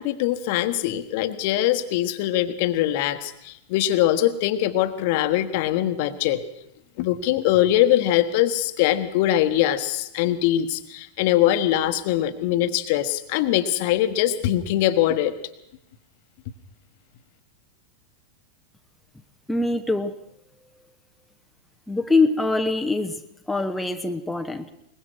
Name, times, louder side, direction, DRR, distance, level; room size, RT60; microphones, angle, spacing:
voice 1, 0.0-6.4 7.0-15.4, left 13 dB, 50° left, 10 dB, 1.3 m, -22 dB
voice 2, 19.5-20.2 21.9-23.2 23.5-24.7, left 3 dB, 5° left, 5 dB, 1.0 m, -23 dB
22.5 x 20.5 x 6.2 m, 0.79 s
figure-of-eight pair, 90°, 0 cm